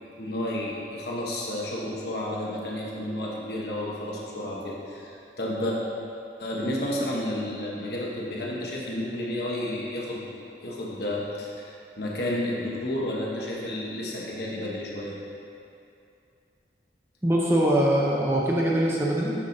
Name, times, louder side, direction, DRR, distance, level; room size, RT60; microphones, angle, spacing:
voice 1, 0.2-5.8 6.4-10.2 10.6-15.1, left 1 dB, 65° left, -4 dB, 1.3 m, -31 dB
voice 2, 17.2-19.3, right 1 dB, 15° right, -4 dB, 0.8 m, -22 dB
7.4 x 5.6 x 4.0 m, 2.6 s
head